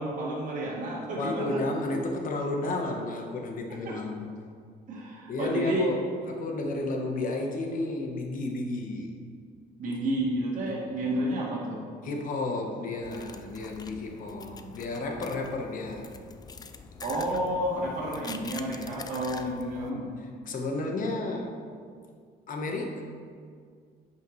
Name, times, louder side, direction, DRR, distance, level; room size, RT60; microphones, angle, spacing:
voice 1, 0.0-1.6 3.9-4.0 4.9-5.8 9.8-11.8 17.0-20.1, right 1 dB, 50° right, -6 dB, 1.7 m, -30 dB
voice 2, 1.2-4.3 5.3-9.1 10.6-11.0 12.0-16.1 17.3-17.8 20.2-21.6 22.5-23.0, left 2 dB, 55° left, 2 dB, 1.1 m, -32 dB
sound 1, 13.0-19.9, left 5 dB, 25° left, 0.4 m, -45 dB
10.0 x 5.5 x 3.2 m, 2.1 s
cardioid pair, 110°, 17 cm